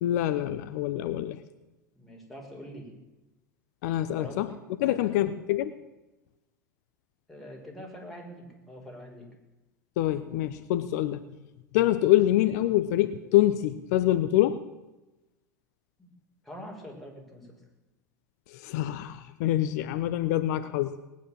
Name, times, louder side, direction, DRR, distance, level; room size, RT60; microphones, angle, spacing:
voice 1, 0.0-1.4 3.8-4.5 4.8-5.7 10.0-11.2 11.7-14.6 18.5-21.0, left 14 dB, 60° left, 12 dB, 0.8 m, -25 dB
voice 2, 1.9-2.9 4.0-5.2 7.3-9.3 16.0-16.1 16.4-17.5, equal, ahead, -2 dB, 5.6 m, -44 dB
19.5 x 9.5 x 7.6 m, 1.0 s
hypercardioid pair, 85°, 10 cm